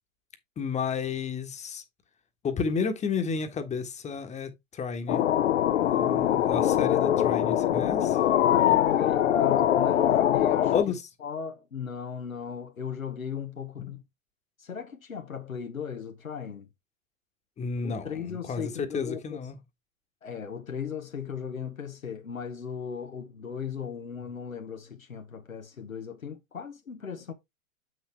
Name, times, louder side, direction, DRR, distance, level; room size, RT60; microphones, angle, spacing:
voice 1, 0.6-1.8 2.4-5.2 5.7-8.2 10.7-11.0 13.8-13.9 17.6-19.6, left 5 dB, 15° left, 1.4 m, -32 dB
sound 1, 5.1-10.8, left 11 dB, 65° left, 1.0 m, -23 dB
voice 2, 8.4-14.0 14.6-16.7 17.8-19.4 20.2-27.3, left 7 dB, 85° left, 1.2 m, -37 dB
8.0 x 6.3 x 3.3 m
figure-of-eight pair, 105°, 40 cm